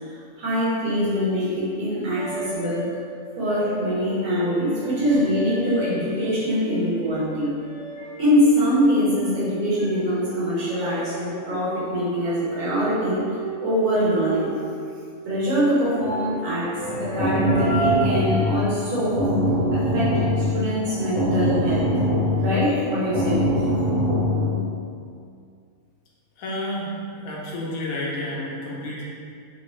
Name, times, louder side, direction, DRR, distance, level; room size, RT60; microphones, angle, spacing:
voice 1, 0.4-2.9 3.4-7.5 8.2-13.2 13.6-14.6 15.2-19.2 19.7-21.9 22.4-23.4, equal, 85° right, -9 dB, 1.5 m, -23 dB
sound 1, 2.2-9.3 9.8-15.0 15.9-17.9, right 2 dB, 65° right, 1.1 m, -34 dB
sound 2, 16.8-24.6, left 1 dB, 25° right, 0.6 m, -23 dB
voice 2, 26.4-26.9 27.2-29.0, left 1 dB, 75° left, -4 dB, 1.1 m, -30 dB
3.2 x 2.7 x 3.0 m, 2.3 s
omnidirectional pair, 1.6 m